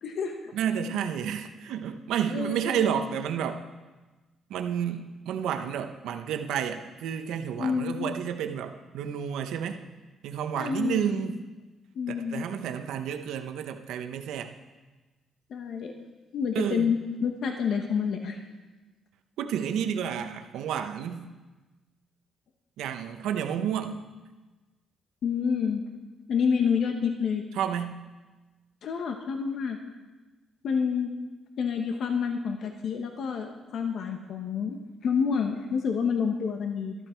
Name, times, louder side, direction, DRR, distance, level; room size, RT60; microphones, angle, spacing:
voice 1, 0.0-0.5 2.3-2.9 7.6-8.1 10.6-11.2 11.9-12.4 15.5-15.9 16.3-18.4 25.2-25.8 26.3-27.4 28.8-29.8 30.6-31.1 31.6-36.9, left 6 dB, 65° left, 4 dB, 1.2 m, -28 dB
voice 2, 0.5-3.6 4.5-9.8 10.2-11.4 12.1-14.5 16.5-16.9 19.4-21.3 22.8-24.0 27.5-28.0, right 8 dB, 85° right, 6 dB, 0.8 m, -30 dB
13.0 x 12.0 x 4.5 m, 1.2 s
cardioid pair, 90°, 0 cm